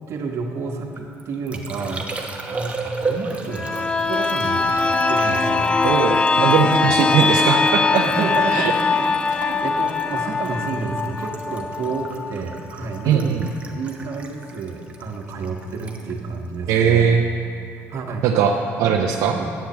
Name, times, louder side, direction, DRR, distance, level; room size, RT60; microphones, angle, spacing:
voice 1, 0.1-4.7 5.1-5.7 6.7-6.9 8.0-9.1 9.4-13.4 13.7-17.1 17.9-18.3 19.3-19.5, right 4 dB, 55° right, 2 dB, 1.3 m, -30 dB
Liquid, 0.7-17.4 17.6-18.1, right 3 dB, 20° right, 1.0 m, -35 dB
sound 1, 3.5-13.1 13.5-13.6, left 4 dB, 20° left, 0.3 m, -21 dB
voice 2, 5.8-8.0 8.5-8.7 9.4-9.6 13.0-13.5 16.7-17.2 18.2-19.4, right 7 dB, 80° right, 2 dB, 0.6 m, -19 dB
9.1 x 7.2 x 7.2 m, 2.8 s
cardioid pair, 115°, 6 cm